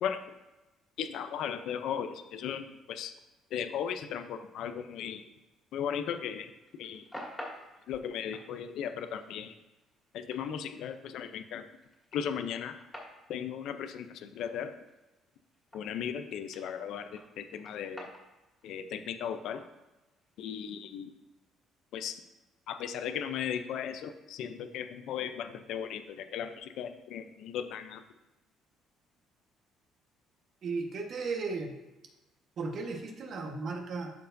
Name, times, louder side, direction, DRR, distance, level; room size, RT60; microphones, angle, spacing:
voice 1, 1.0-3.1 3.5-5.2 5.7-7.0 7.9-9.5 10.1-11.6 12.1-12.8 13.3-14.7 15.7-18.1 18.6-19.6 20.4-21.1 21.9-22.2 22.7-28.0, left 8 dB, 70° left, 9 dB, 0.5 m, -36 dB
sound 1, 6.6-16.3 16.5-20.6, left 1 dB, 10° left, 2.3 m, -49 dB
voice 2, 30.6-31.7 32.6-34.1, right 4 dB, 50° right, 2 dB, 1.3 m, -35 dB
12.5 x 4.6 x 2.6 m, 1.0 s
cardioid pair, 125°, 0 cm